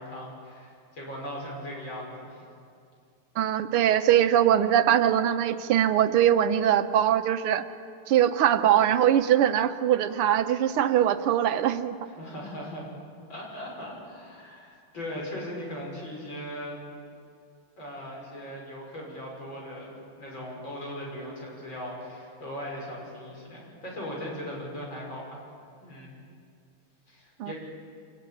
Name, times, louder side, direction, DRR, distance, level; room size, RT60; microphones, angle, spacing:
voice 1, 0.0-2.5 12.1-12.9 13.3-16.8 17.8-25.4 25.8-26.1 27.1-27.5, equal, 60° left, -2 dB, 6.8 m, -39 dB
voice 2, 3.4-7.7 8.1-12.0 27.4-27.5, right 10 dB, 85° right, 10 dB, 1.8 m, -22 dB
25.5 x 17.0 x 9.9 m, 2.3 s
omnidirectional pair, 2.4 m